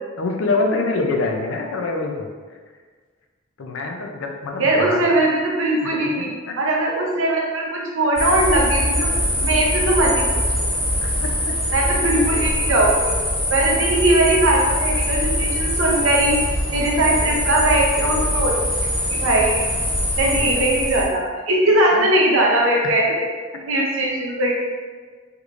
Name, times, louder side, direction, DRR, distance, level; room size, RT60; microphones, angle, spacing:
voice 1, 0.2-2.3 3.6-5.0 5.8-5.9 6.2-6.5 11.0-11.3 12.3-12.4 13.7-13.8 20.3-20.6 21.9-22.0 22.8-22.9, left 3 dB, 75° left, 2 dB, 0.5 m, -25 dB
voice 2, 4.6-6.3 6.6-10.4 11.7-13.2 13.5-16.4 16.7-18.5 19.1-19.6 20.2-23.3 23.7-24.5, right 1 dB, 80° right, -2 dB, 0.7 m, -20 dB
sound 1, 8.2-21.0, equal, 25° left, 1.3 m, -23 dB
3.5 x 3.0 x 2.5 m, 1.5 s
head